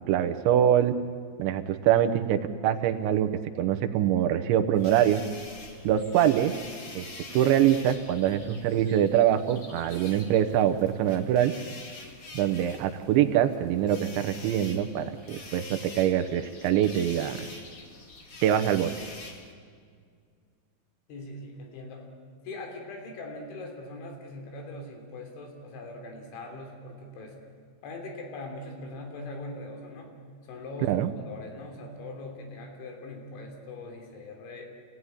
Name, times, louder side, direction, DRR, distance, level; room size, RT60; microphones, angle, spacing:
voice 1, 0.1-1.0 1.4-3.3 3.6-5.2 5.8-6.5 7.0-7.1 7.3-11.5 12.3-17.4 18.4-18.9 30.9-31.1, right 10 dB, 85° right, 8 dB, 3.4 m, -24 dB
sound 1, 4.7-19.5, left 3 dB, 40° left, 1.6 m, -46 dB
voice 2, 21.1-22.1 22.5-27.4 27.8-30.2 30.4-34.6, left 2 dB, 85° left, 2 dB, 5.6 m, -41 dB
26.5 x 17.0 x 9.9 m, 2.1 s
omnidirectional pair, 5.2 m